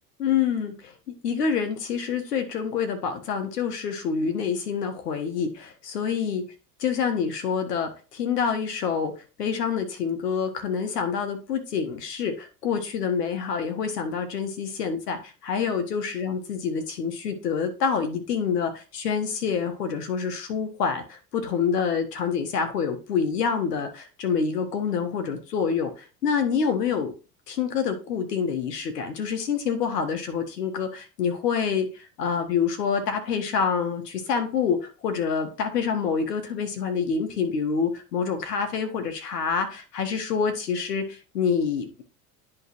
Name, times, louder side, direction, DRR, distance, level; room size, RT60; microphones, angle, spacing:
voice 1, 0.2-0.9 1.2-6.4 6.8-9.1 9.4-27.1 27.5-42.0, left 6 dB, 80° left, 6 dB, 1.6 m, -27 dB
10.5 x 3.7 x 3.1 m, 0.33 s
hypercardioid pair, 75°, 47 cm